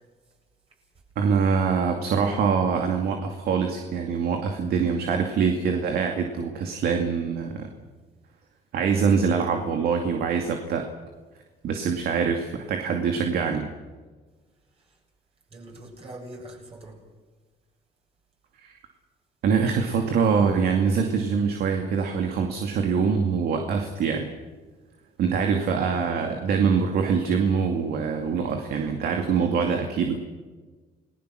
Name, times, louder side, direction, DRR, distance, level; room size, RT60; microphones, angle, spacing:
voice 1, 1.2-7.7 8.7-10.9 11.6-13.7 18.6-18.7 19.4-24.3 25.2-30.2, right 6 dB, 65° right, 4 dB, 2.4 m, -24 dB
voice 2, 15.5-17.0, right 1 dB, 35° right, 0 dB, 7.7 m, -43 dB
30.0 x 19.5 x 6.4 m, 1.3 s
cardioid pair, 110°, 17 cm